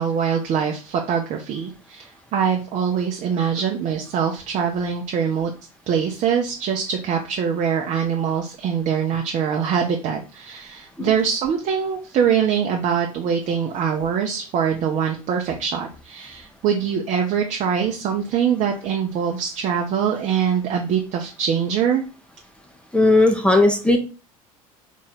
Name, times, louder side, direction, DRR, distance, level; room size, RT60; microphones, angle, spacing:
voice 1, 0.0-5.5 5.9-22.0, right 7 dB, 40° right, 2 dB, 0.7 m, -23 dB
voice 2, 22.9-24.0, left 2 dB, 5° left, 4 dB, 0.8 m, -16 dB
4.1 x 3.1 x 3.8 m, 0.34 s
figure-of-eight pair, 70°, 18 cm